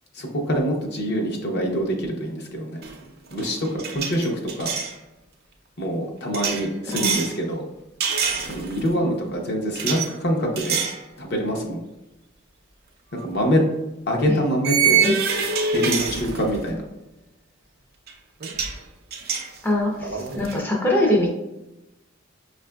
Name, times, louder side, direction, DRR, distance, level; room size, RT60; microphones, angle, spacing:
voice 1, 0.1-2.8 3.3-4.7 5.8-7.6 8.4-10.8 11.2-11.8 13.2-13.6 14.1-15.1 15.7-16.8, equal, 55° left, 1 dB, 0.7 m, -25 dB
sound 1, 2.8-3.1 3.3-4.9 6.3-7.3 8.0-8.9 9.8-10.1 10.6-11.0 11.5-11.6 13.2-13.3 14.6-16.7 18.1-18.2 18.4-18.8 19.1-20.6, right 6 dB, 50° right, 0.5 m, -25 dB
voice 2, 6.9-7.2 15.0-15.2 19.6-21.3, left 1 dB, 10° left, -2 dB, 0.5 m, -23 dB
5.6 x 2.5 x 2.2 m, 0.95 s
head